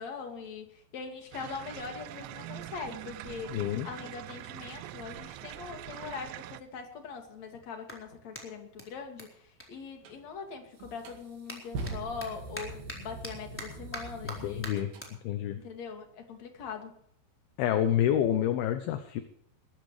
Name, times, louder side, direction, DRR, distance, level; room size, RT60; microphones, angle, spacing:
voice 1, 0.0-3.6 3.8-14.7 15.6-17.0, left 5 dB, 45° left, 3 dB, 3.2 m, -42 dB
sound 1, 1.3-6.6, right 15 dB, 80° right, 2.9 m, -43 dB
voice 2, 3.5-3.9 14.2-14.9 15.2-15.6 17.6-19.2, left 10 dB, 75° left, 9 dB, 2.4 m, -28 dB
Clapping, 7.8-10.6 10.9-17.5, equal, 5° left, 3.3 m, -47 dB
sound 2, 10.0-10.2 10.8-15.1, right 3 dB, 60° right, 3.6 m, -42 dB
21.0 x 14.5 x 3.3 m, 0.67 s
omnidirectional pair, 5.1 m